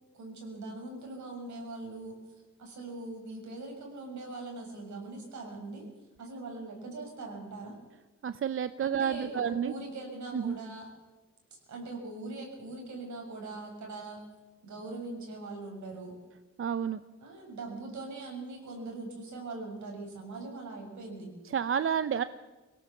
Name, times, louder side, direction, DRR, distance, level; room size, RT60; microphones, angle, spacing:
voice 1, 0.1-2.2 2.6-5.9 6.2-7.8 8.8-10.9 11.7-14.2 14.6-16.2 17.2-21.3, right 2 dB, 70° right, 1 dB, 7.0 m, -41 dB
voice 2, 8.2-9.7 10.3-10.6 16.6-17.0 21.5-22.2, right 8 dB, 45° right, 13 dB, 0.7 m, -30 dB
23.5 x 18.0 x 7.2 m, 1.1 s
cardioid pair, 115°, 30 cm